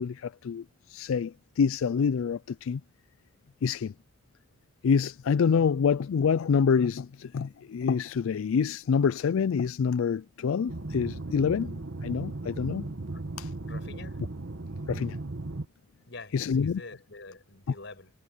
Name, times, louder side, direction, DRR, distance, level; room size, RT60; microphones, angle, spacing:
voice 1, 0.0-2.8 3.6-3.9 4.8-12.9 13.4-13.5 14.9-15.2 16.3-16.8, left 6 dB, 80° left, 0.4 m, -27 dB
sound 1, 10.7-15.7, right 2 dB, 70° right, 1.3 m, -37 dB
voice 2, 13.6-14.2 16.1-18.1, left 3 dB, 60° left, 6.8 m, -46 dB
head